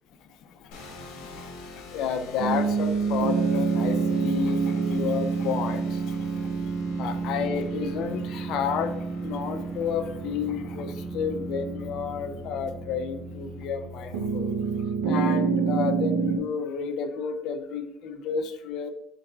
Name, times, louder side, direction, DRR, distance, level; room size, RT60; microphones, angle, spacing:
voice 1, 0.2-6.5 7.0-18.9, left 6 dB, 60° left, 7 dB, 0.4 m, -31 dB
sound 1, 0.7-15.0, left 1 dB, 80° left, 0.9 m, -42 dB
sound 2, 2.4-13.1 14.1-16.4, right 5 dB, 90° right, 0.4 m, -28 dB
3.9 x 3.5 x 2.3 m, 0.78 s
cardioid pair, 115°, 0 cm